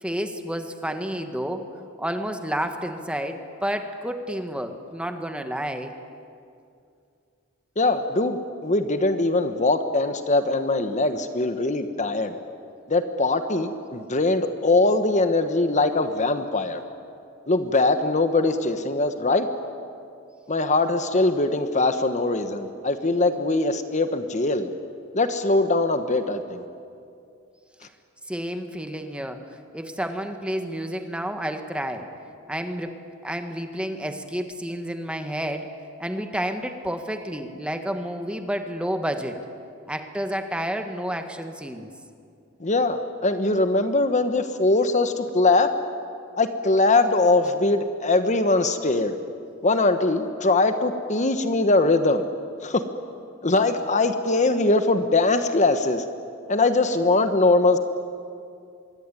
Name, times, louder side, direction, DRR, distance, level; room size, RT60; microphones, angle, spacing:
voice 1, 0.0-1.7 2.0-5.9 27.8-27.9 28.3-32.1 32.5-39.4 39.9-41.9, equal, 5° right, 6 dB, 1.6 m, -30 dB
voice 2, 7.8-12.4 12.9-16.8 17.5-19.5 20.5-24.7 25.1-26.6 42.6-45.7 46.4-49.2 49.6-52.2 52.6-52.8 53.4-56.0 56.5-57.8, left 2 dB, 35° left, 8 dB, 1.2 m, -22 dB
25.5 x 22.5 x 9.8 m, 2.4 s
head